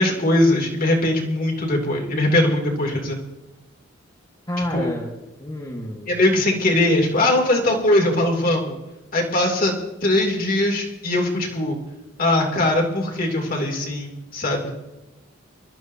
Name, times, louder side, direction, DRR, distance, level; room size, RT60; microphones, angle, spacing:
voice 1, 0.0-3.2 4.7-4.9 6.1-8.8 9.1-9.7 10.0-11.8 12.2-14.7, left 1 dB, 45° left, 0 dB, 2.6 m, -20 dB
voice 2, 4.5-5.1 5.4-6.2, left 1 dB, 20° left, -2 dB, 1.4 m, -29 dB
25.0 x 12.5 x 2.7 m, 1.0 s
head